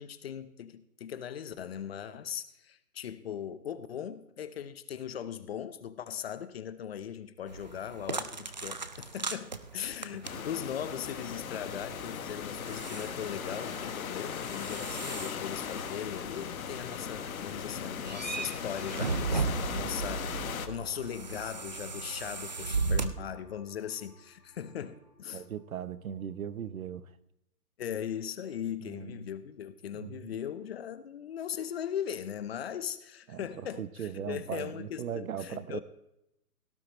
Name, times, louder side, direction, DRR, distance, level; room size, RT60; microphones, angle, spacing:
voice 1, 0.0-20.3 20.7-25.4 27.8-35.8, left 9 dB, 40° left, 0.8 m, -39 dB
sound 1, 7.5-23.1, right 4 dB, 30° right, 0.4 m, -37 dB
sound 2, 10.2-20.7, left 8 dB, 60° left, 1.2 m, -38 dB
sound 3, 13.3-26.9, left 1 dB, 15° right, 2.6 m, -59 dB
voice 2, 25.3-27.2 28.8-29.3 29.9-30.4 33.3-35.8, right 8 dB, 60° right, 0.9 m, -39 dB
17.5 x 11.5 x 3.0 m
hypercardioid pair, 145°, 46 cm